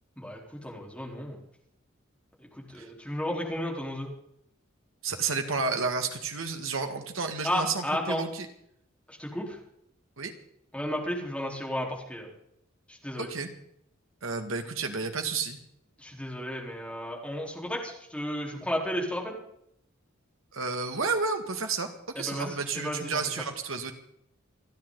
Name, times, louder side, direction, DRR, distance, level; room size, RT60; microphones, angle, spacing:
voice 1, 0.2-1.4 2.4-4.1 7.4-8.2 9.1-9.6 10.7-12.3 12.9-13.3 16.0-19.4 22.2-23.2, equal, 5° left, -2 dB, 4.0 m, -33 dB
voice 2, 5.0-8.5 10.2-10.3 13.2-13.5 14.2-15.6 20.5-21.9 22.2-23.9, right 4 dB, 70° right, 5 dB, 2.0 m, -31 dB
29.0 x 10.5 x 4.0 m, 0.73 s
head